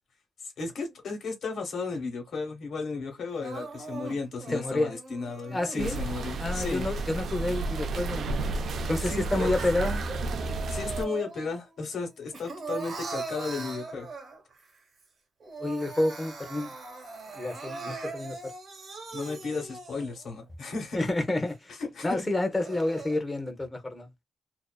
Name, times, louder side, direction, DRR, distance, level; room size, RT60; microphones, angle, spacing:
voice 1, 0.6-6.9 9.0-9.5 10.7-14.1 19.1-21.1 21.8-22.2, left 4 dB, 70° left, 0.9 m, -34 dB
Crying sobbing, 3.4-5.8 6.5-8.2 8.7-11.6 11.9-14.6 15.0-15.1 15.4-20.2 20.8-20.9 21.4-21.5 22.3-23.2, right 3 dB, 55° right, 0.8 m, -41 dB
voice 2, 4.5-4.9 5.5-6.0 6.4-8.3 8.9-10.0 15.6-16.7 17.3-18.5 20.9-21.7 22.0-24.1, left 2 dB, 20° left, 0.6 m, -29 dB
sound 1, 5.8-11.0, right 3 dB, 70° right, 0.3 m, -31 dB
2.4 x 2.3 x 2.2 m
wide cardioid pair, 130°, 0 cm